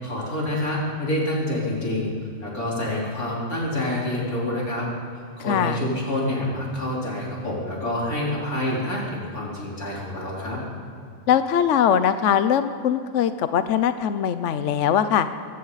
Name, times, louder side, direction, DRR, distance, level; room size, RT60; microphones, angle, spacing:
voice 1, 0.0-2.1 2.4-4.9 5.4-10.6, left 1 dB, 90° left, -5 dB, 4.7 m, -27 dB
voice 2, 5.5-5.8 11.3-15.3, left 9 dB, 65° left, 11 dB, 0.9 m, -21 dB
22.5 x 15.5 x 4.1 m, 2.5 s
omnidirectional pair, 1.5 m